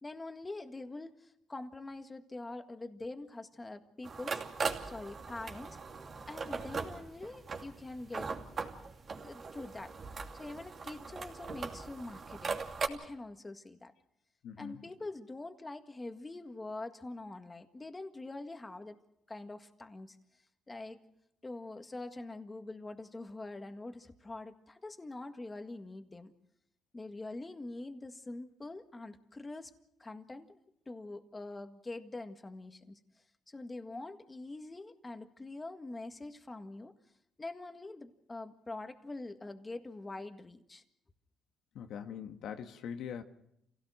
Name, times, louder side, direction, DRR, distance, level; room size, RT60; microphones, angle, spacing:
voice 1, 0.0-4.4 4.8-5.8 6.3-8.3 9.2-9.9 10.3-12.6 12.9-13.9 14.6-19.0 19.3-20.2 20.7-21.0 21.4-26.3 26.9-29.7 30.0-30.6 30.8-33.0 33.5-36.9 37.4-40.8, left 2 dB, 20° left, 1.8 m, -44 dB
sound 1, 4.0-12.9, right 4 dB, 45° right, 2.6 m, -40 dB
voice 2, 14.4-14.9 41.7-43.2, left 8 dB, 80° left, 1.4 m, -42 dB
27.0 x 17.0 x 6.4 m
cardioid pair, 90°, 0 cm